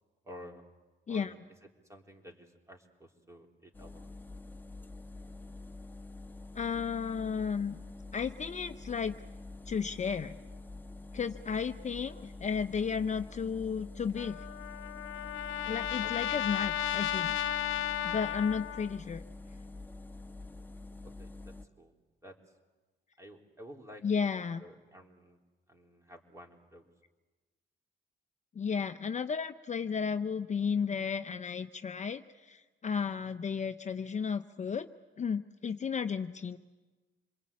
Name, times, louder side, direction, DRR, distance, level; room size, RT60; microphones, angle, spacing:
voice 1, 0.2-0.6 1.1-1.4 1.9-4.1 16.0-16.1 21.0-21.3 21.8-21.9 22.2-22.4 23.2-24.0 24.3-25.4 25.7-26.8, equal, 15° right, 2 dB, 3.7 m, -51 dB
sound 1, 3.7-21.6, left 2 dB, 10° left, 1.4 m, -47 dB
voice 2, 6.5-7.8 8.1-9.2 9.7-10.4 11.1-14.4 15.7-17.4 18.0-19.2 24.0-24.6 28.6-34.9 35.2-36.6, left 6 dB, 35° left, 9 dB, 0.8 m, -33 dB
Trumpet, 14.2-19.0, left 11 dB, 85° left, 0.9 m, -34 dB
27.0 x 21.5 x 8.5 m, 1.2 s
cardioid pair, 90°, 20 cm